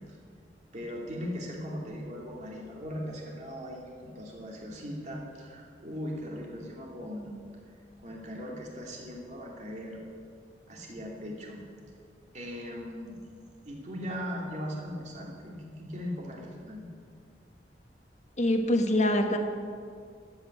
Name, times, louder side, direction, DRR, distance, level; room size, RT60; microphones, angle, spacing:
voice 1, 0.7-7.4 8.0-10.0 10.7-11.6 12.3-13.1 13.6-16.9, equal, 40° right, -2 dB, 2.8 m, -39 dB
voice 2, 18.4-19.4, left 1 dB, 40° left, 5 dB, 1.3 m, -24 dB
12.5 x 8.5 x 8.5 m, 2.2 s
head